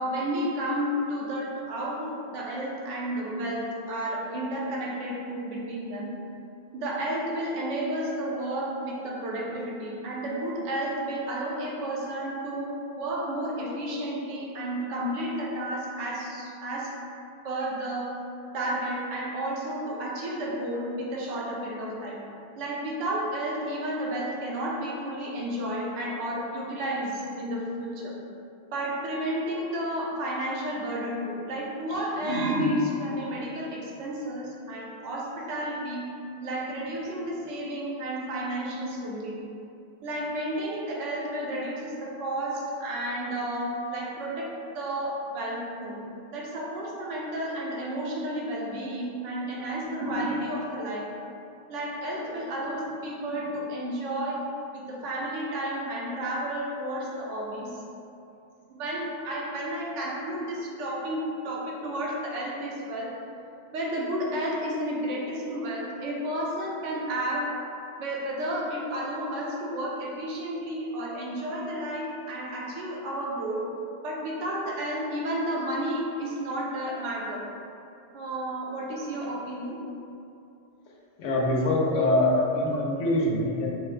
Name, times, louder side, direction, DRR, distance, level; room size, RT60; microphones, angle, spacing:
voice 1, 0.0-6.1 6.7-16.9 17.4-18.1 18.5-22.2 22.6-28.1 28.7-36.0 36.4-39.4 40.0-46.0 46.3-51.1 51.7-54.4 54.9-57.8 58.7-63.2 63.7-67.5 68.0-73.7 74.0-77.5 78.1-79.8 82.3-82.5, right 1 dB, 80° right, -3 dB, 0.9 m, -31 dB
voice 2, 81.2-83.7, left 1 dB, 75° left, -3 dB, 1.0 m, -24 dB
4.5 x 2.1 x 3.2 m, 2.6 s
omnidirectional pair, 1.3 m